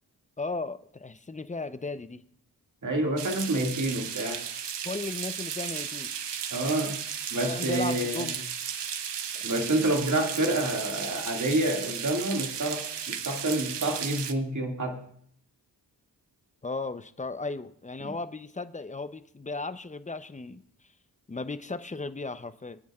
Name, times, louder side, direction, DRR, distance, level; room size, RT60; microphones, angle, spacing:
voice 1, 0.4-2.2 4.8-6.1 7.4-8.4 16.6-20.6 21.3-22.8, left 3 dB, 20° left, 12 dB, 0.6 m, -35 dB
voice 2, 2.8-4.4 6.5-7.0 7.3-8.3 9.4-15.0, right 1 dB, 45° right, 2 dB, 2.1 m, -28 dB
sound 1, 3.2-14.3, right 8 dB, 80° right, 0.9 m, -35 dB
22.5 x 9.4 x 2.4 m, 0.64 s
cardioid pair, 55°, 41 cm